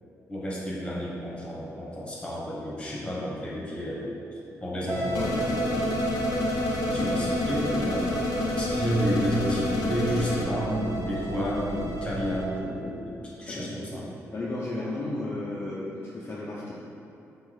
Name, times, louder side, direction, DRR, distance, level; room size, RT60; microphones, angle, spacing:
voice 1, 0.3-6.0 6.9-8.2 8.5-14.0, equal, 15° left, -5 dB, 1.3 m, -31 dB
sound 1, 4.9-12.4, right 3 dB, 65° right, 0.8 m, -34 dB
sound 2, 5.1-10.4, left 3 dB, 85° left, 0.6 m, -28 dB
voice 2, 14.3-16.7, left 2 dB, 35° left, -7 dB, 0.6 m, -33 dB
3.9 x 3.0 x 4.1 m, 2.8 s
cardioid pair, 65°, 6 cm